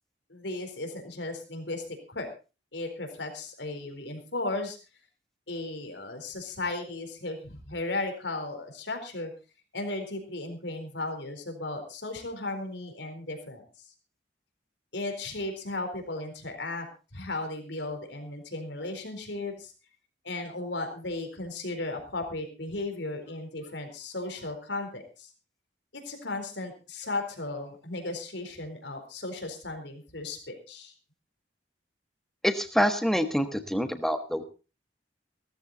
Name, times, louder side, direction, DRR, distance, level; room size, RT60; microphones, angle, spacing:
voice 1, 0.3-1.8 2.1-2.3 2.7-4.8 5.5-9.3 9.7-13.6 14.9-16.9 17.1-19.7 20.2-25.3 25.9-30.9, left 2 dB, 85° left, 5 dB, 4.2 m, -35 dB
voice 2, 32.4-34.4, equal, ahead, 8 dB, 1.4 m, -26 dB
16.5 x 14.0 x 4.0 m, 0.32 s
head